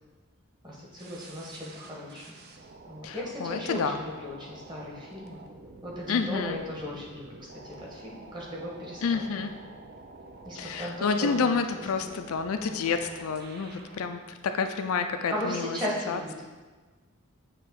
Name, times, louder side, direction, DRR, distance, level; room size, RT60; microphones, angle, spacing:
voice 1, 0.6-2.3 2.9-5.4 5.8-9.5 10.4-11.5 12.0-12.1 13.7-13.9 15.3-16.4, left 1 dB, 20° right, -4 dB, 1.3 m, -36 dB
sound 1, 1.0-14.1, right 3 dB, 50° right, 0.5 m, -49 dB
voice 2, 3.0-4.0 6.1-6.6 9.0-9.5 10.5-15.8 16.1-16.4, left 5 dB, 80° left, 7 dB, 0.4 m, -29 dB
7.4 x 3.0 x 4.7 m, 1.4 s
head